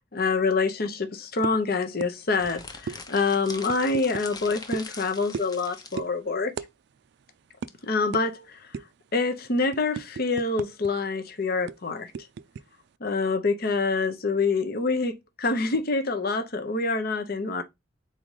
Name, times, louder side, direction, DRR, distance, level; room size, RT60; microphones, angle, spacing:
voice 1, 0.1-6.5 7.8-8.7 9.1-12.1 13.0-17.6, left 3 dB, 55° left, 0.8 m, -26 dB
sound 1, 1.4-1.6 2.0-2.1 2.4-2.5 2.9-3.0 3.7-4.3 4.7-4.9 5.3-5.6 6.0-6.1 6.6-6.7 7.0-7.1 7.6-7.7 8.1-8.3 8.7-9.0 9.4-10.9 11.2-11.3 11.7-12.6, right 6 dB, 65° right, 0.3 m, -35 dB
sound 2, 2.3-6.0, left 4 dB, 20° left, 0.7 m, -42 dB
4.2 x 3.8 x 3.2 m
head